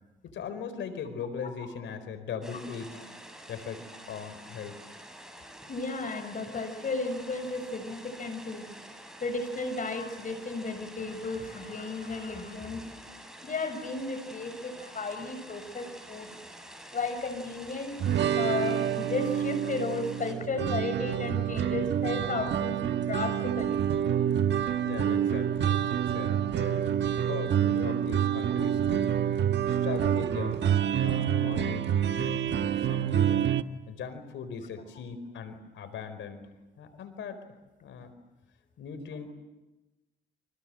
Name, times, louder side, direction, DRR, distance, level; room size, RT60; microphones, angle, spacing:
voice 1, 0.2-3.0 3.5-4.8 24.8-29.2 29.7-30.6 31.0-33.5 33.9-36.4 36.8-37.4 37.8-38.1 38.8-39.3, left 6 dB, 70° left, 10 dB, 4.7 m, -39 dB
sound 1, 2.4-20.4, right 1 dB, 5° right, 7.5 m, -48 dB
voice 2, 5.7-8.7 9.2-12.9 13.4-16.3 16.9-18.0 18.3-23.8, left 3 dB, 40° left, 8 dB, 6.7 m, -34 dB
sound 2, 18.0-33.6, right 9 dB, 65° right, 1.4 m, -27 dB
29.5 x 26.0 x 7.8 m, 1.1 s
cardioid pair, 90°, 20 cm